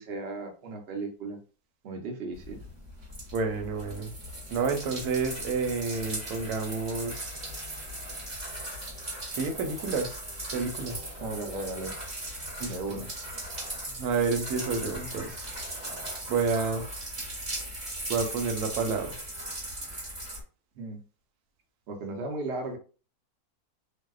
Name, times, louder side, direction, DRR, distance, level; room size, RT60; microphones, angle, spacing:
voice 1, 0.0-1.4 1.8-2.6 11.2-11.9 12.6-13.1 20.8-21.0 21.9-22.8, right 3 dB, 55° right, 2 dB, 0.7 m, -35 dB
sound 1, 2.3-20.4, right 1 dB, 30° right, 1.1 m, -38 dB
voice 2, 3.3-4.1 4.5-7.3 9.4-10.2 10.5-11.0 12.6-13.0 13.9-15.5 16.3-16.9 18.1-19.2, right 4 dB, 90° right, 4 dB, 1.1 m, -30 dB
2.7 x 2.0 x 2.3 m, 0.36 s
omnidirectional pair, 1.6 m